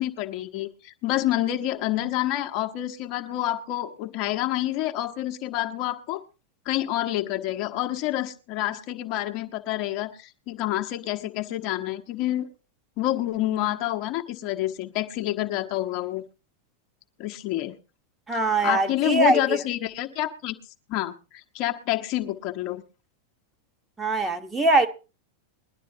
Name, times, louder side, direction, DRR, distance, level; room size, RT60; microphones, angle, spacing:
voice 1, 0.0-6.2 6.6-12.5 13.0-16.2 17.2-17.8 18.3-20.5 20.9-22.8, left 14 dB, 40° left, 1.2 m, -28 dB
voice 2, 18.3-19.6 24.0-24.9, right 2 dB, 10° right, 1.3 m, -22 dB
21.0 x 11.5 x 2.9 m
figure-of-eight pair, 90°, 0 cm